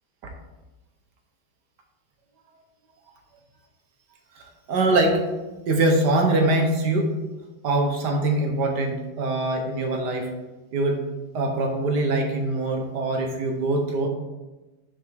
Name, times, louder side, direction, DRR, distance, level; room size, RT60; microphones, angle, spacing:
voice 1, 4.4-5.2 5.7-7.1 7.6-10.3 10.7-11.0 11.3-14.1, right 2 dB, 65° right, 3 dB, 1.4 m, -23 dB
6.8 x 6.3 x 3.4 m, 1.1 s
omnidirectional pair, 2.1 m